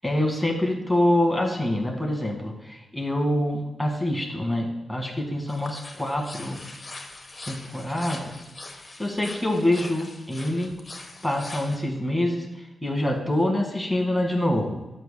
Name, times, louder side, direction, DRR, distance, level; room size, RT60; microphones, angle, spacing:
voice 1, 0.0-6.6 7.5-8.4 9.0-10.7 11.2-15.0, left 1 dB, ahead, 0 dB, 2.0 m, -26 dB
sound 1, 5.5-11.8, left 2 dB, 35° left, 1.3 m, -42 dB
12.0 x 7.3 x 2.3 m, 1.1 s
cardioid pair, 65°, 0 cm